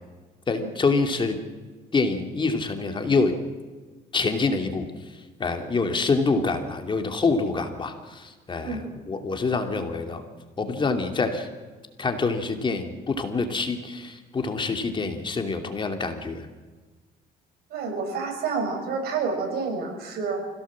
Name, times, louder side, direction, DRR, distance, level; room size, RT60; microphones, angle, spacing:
voice 1, 0.5-1.4 1.9-3.3 4.1-4.9 5.4-8.8 9.1-10.2 10.6-11.5 12.0-16.5, left 4 dB, 30° left, 5 dB, 2.7 m, -26 dB
voice 2, 17.7-20.4, right 4 dB, 70° right, 3 dB, 6.5 m, -29 dB
26.0 x 17.0 x 7.6 m, 1.3 s
cardioid pair, 110°, 17 cm